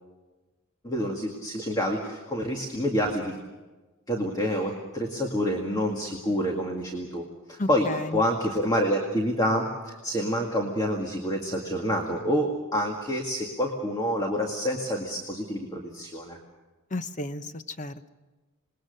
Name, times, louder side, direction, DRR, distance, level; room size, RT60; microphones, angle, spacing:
voice 1, 0.8-3.4 4.1-16.4, equal, 20° left, 1 dB, 2.1 m, -28 dB
voice 2, 7.6-8.2 16.9-18.1, left 2 dB, 35° left, 11 dB, 0.8 m, -33 dB
27.0 x 20.5 x 6.7 m, 1.2 s
head